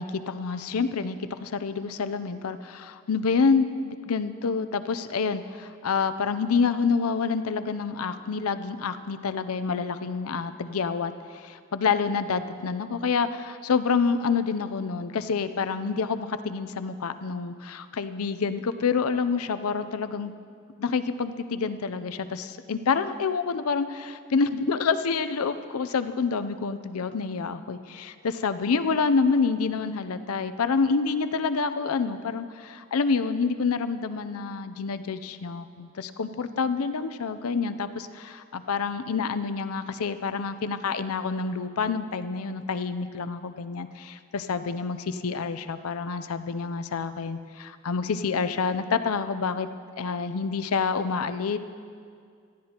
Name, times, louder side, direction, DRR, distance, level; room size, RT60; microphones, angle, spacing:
voice 1, 0.0-20.3 20.8-49.7 50.0-51.6, left 5 dB, 80° left, 11 dB, 0.5 m, -27 dB
18.0 x 13.0 x 2.9 m, 2.2 s
head